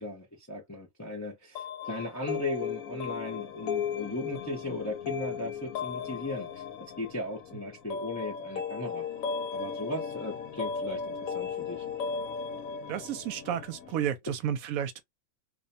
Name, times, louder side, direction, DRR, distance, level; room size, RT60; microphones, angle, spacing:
voice 1, 0.0-6.6 7.0-9.1 9.5-11.8, left 2 dB, 25° left, 0.4 m, -37 dB
sound 1, 1.6-14.1, left 6 dB, 75° left, 1.0 m, -36 dB
voice 2, 12.9-15.0, right 9 dB, 85° right, 1.0 m, -32 dB
2.5 x 2.2 x 2.5 m
omnidirectional pair, 1.4 m